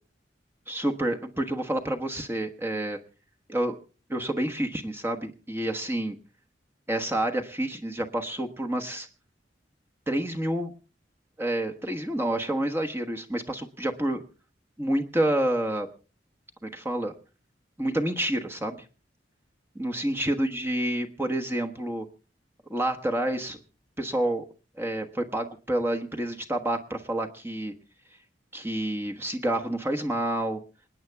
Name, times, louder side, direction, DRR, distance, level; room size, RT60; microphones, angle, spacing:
voice 1, 0.7-3.0 3.5-3.8 4.1-6.2 6.9-9.1 10.1-10.7 11.4-14.2 14.8-15.9 16.6-17.1 17.8-18.8 19.7-22.0 22.7-23.6 24.0-24.4 24.8-27.7 28.5-30.6, right 1 dB, 15° right, 3 dB, 1.2 m, -28 dB
27.0 x 9.7 x 3.5 m, 0.35 s
head